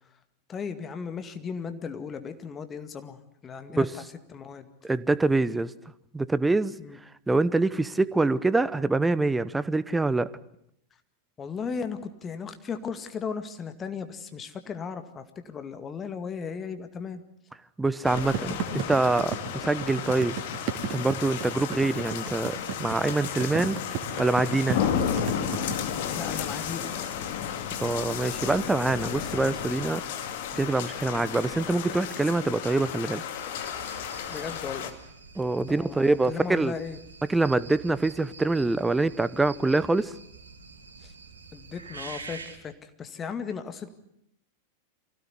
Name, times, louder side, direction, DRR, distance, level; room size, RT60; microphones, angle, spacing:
voice 1, 0.5-4.0 4.3-4.7 6.8-7.0 11.4-17.2 23.5-23.6 26.1-26.9 34.3-35.0 35.7-37.0 41.0-41.1 41.5-43.9, left 6 dB, 20° left, 9 dB, 2.1 m, -36 dB
voice 2, 4.8-5.7 6.1-6.7 7.3-10.3 17.8-20.4 20.9-23.8 24.2-24.8 27.8-30.0 30.5-33.2 35.4-36.7 37.3-40.1, right 2 dB, 10° right, 17 dB, 0.9 m, -25 dB
sound 1, 18.0-34.9, left 8 dB, 50° left, 2.2 m, -33 dB
sound 2, 18.2-25.8, right 7 dB, 45° right, 2.9 m, -33 dB
sound 3, 33.3-42.6, right 4 dB, 75° right, 3.1 m, -46 dB
24.5 x 17.0 x 9.8 m, 0.76 s
figure-of-eight pair, 90°, 0 cm